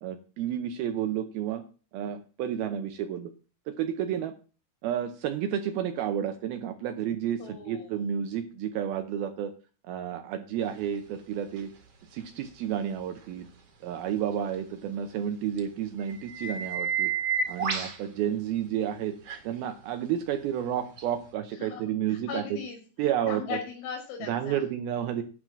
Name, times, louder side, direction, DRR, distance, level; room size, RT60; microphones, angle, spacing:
voice 1, 0.0-1.6 1.9-3.3 3.7-4.3 4.8-9.5 9.8-11.7 12.1-13.5 13.8-17.1 17.5-19.2 19.4-22.4 23.0-23.6 24.3-25.2, right 10 dB, 75° right, 8 dB, 2.4 m, -31 dB
voice 2, 7.4-8.0 21.5-21.8 22.1-22.8 23.3-24.6, left 6 dB, 85° left, 1 dB, 4.2 m, -38 dB
sound 1, 11.6-11.7 15.6-15.7 16.1-18.0 19.3-19.4 21.0-21.1, right 6 dB, 45° right, 2.4 m, -30 dB
11.0 x 4.9 x 7.5 m, 0.36 s
omnidirectional pair, 4.8 m